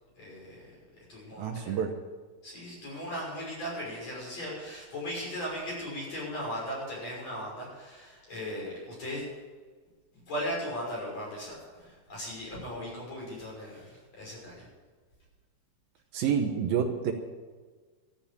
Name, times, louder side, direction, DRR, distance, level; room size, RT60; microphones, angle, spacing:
voice 1, 0.2-0.8 1.1-1.8 2.4-9.2 10.1-14.7, equal, 40° left, -4 dB, 7.0 m, -38 dB
voice 2, 1.4-1.9 16.1-17.1, right 7 dB, 75° right, 4 dB, 2.7 m, -28 dB
13.0 x 8.9 x 8.8 m, 1.4 s
omnidirectional pair, 4.4 m